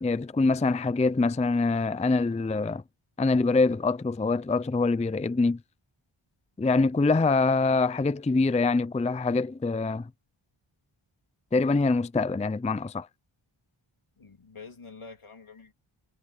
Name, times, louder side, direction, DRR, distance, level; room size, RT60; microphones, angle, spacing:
voice 1, 0.0-2.8 3.2-5.6 6.6-10.1 11.5-13.1, left 3 dB, 15° left, 0.4 m, -24 dB
voice 2, 14.2-15.7, left 4 dB, 75° left, 3.2 m, -47 dB
wide cardioid pair, 55°, 50 cm